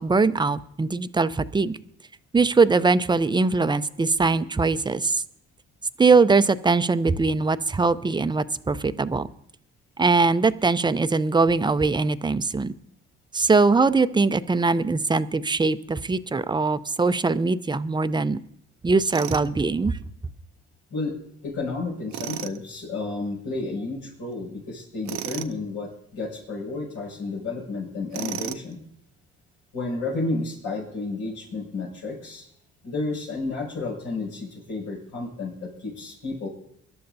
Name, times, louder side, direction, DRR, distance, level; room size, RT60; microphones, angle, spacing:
voice 1, 0.0-1.8 2.3-5.2 6.0-9.3 10.0-12.7 13.3-18.4 18.8-20.0, right 4 dB, 15° right, 13 dB, 0.5 m, -21 dB
Tools, 19.1-19.5 22.1-22.6 25.1-25.6 28.1-28.7, right 11 dB, 70° right, 0.6 m, -33 dB
voice 2, 21.4-28.8 29.7-32.4 32.8-36.5, left 3 dB, 85° left, -2 dB, 6.3 m, -31 dB
24.5 x 11.5 x 2.7 m, 0.72 s
cardioid pair, 90°, 30 cm